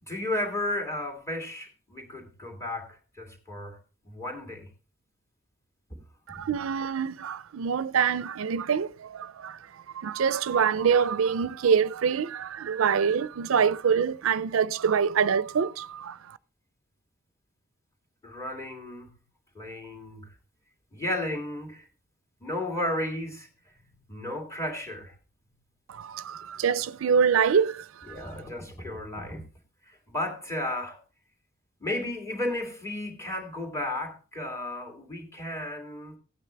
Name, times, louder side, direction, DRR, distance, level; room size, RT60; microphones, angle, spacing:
voice 1, 0.0-3.8 4.0-4.7 18.2-19.1 19.5-20.3 20.9-21.9 22.4-23.8 24.1-25.1 28.1-29.4 29.9-31.0 31.8-36.2, left 1 dB, 15° left, 3.0 m, -34 dB
voice 2, 6.3-9.6 9.9-16.4 25.9-28.3, right 6 dB, 80° right, 0.4 m, -25 dB
16.5 x 9.2 x 3.3 m
head